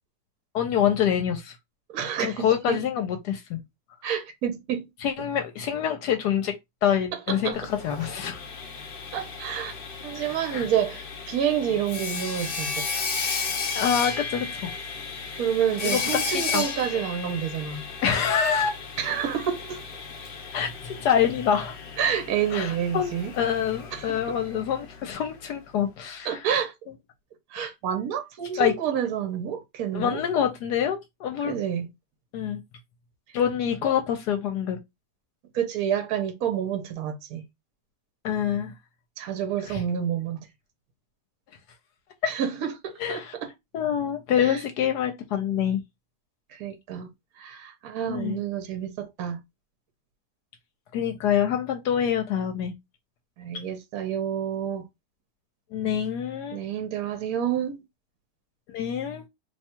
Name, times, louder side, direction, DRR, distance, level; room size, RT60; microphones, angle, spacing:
voice 1, 0.5-1.6 2.2-3.6 5.0-6.5 6.8-8.4 10.2-10.7 13.7-14.7 15.8-16.0 16.3-16.6 18.0-18.8 20.5-21.8 22.5-26.4 28.6-28.7 29.9-31.6 32.3-32.6 33.3-34.8 38.2-38.7 39.7-39.8 43.0-43.3 43.7-45.8 48.1-48.4 50.9-52.7 55.7-56.6 58.7-59.2, left 8 dB, 75° left, 1.2 m, -26 dB
voice 2, 1.9-2.8 4.0-4.9 7.1-7.6 9.1-9.8 10.0-12.8 15.4-17.9 19.0-19.8 22.0-23.3 23.9-24.4 26.2-26.7 27.5-30.2 31.4-31.9 35.5-37.4 39.2-40.5 42.2-43.5 44.4-44.6 46.5-47.1 47.4-49.4 53.4-54.8 56.5-57.8, right 9 dB, 65° right, 1.1 m, -29 dB
Sawing, 7.5-25.3, left 5 dB, 55° left, 0.6 m, -34 dB
2.9 x 2.3 x 4.2 m
omnidirectional pair, 1.8 m